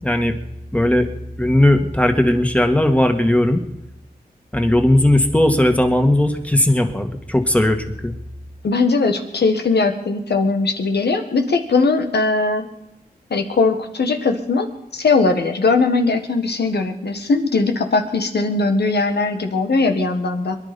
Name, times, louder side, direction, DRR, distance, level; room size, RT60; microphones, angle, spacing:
voice 1, 0.0-0.3 0.7-1.1 1.4-3.6 4.5-8.1, left 1 dB, 10° left, 5 dB, 2.0 m, -17 dB
voice 2, 8.6-12.6 13.3-14.7 14.9-20.6, left 3 dB, 80° left, 6 dB, 1.7 m, -19 dB
23.0 x 11.0 x 5.4 m, 0.86 s
cardioid pair, 50°, 17 cm